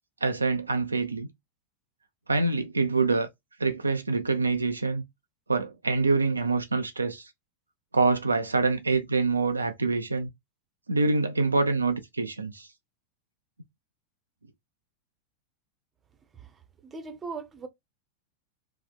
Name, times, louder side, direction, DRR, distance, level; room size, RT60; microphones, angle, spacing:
voice 1, 0.2-1.3 2.3-3.3 3.6-5.0 5.5-7.3 7.9-10.3 10.9-12.7, right 3 dB, 80° right, 0.3 m, -25 dB
voice 2, 16.8-17.7, right 4 dB, 20° right, 0.6 m, -38 dB
2.7 x 2.0 x 2.3 m
figure-of-eight pair, 90°, 0 cm